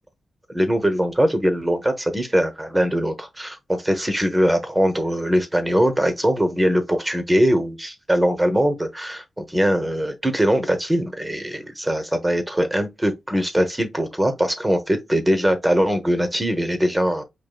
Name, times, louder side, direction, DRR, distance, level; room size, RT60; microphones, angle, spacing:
voice 1, 0.5-17.2, equal, 10° right, 0.8 m, -21 dB
5.0 x 2.6 x 2.3 m
cardioid pair, 85°, 0 cm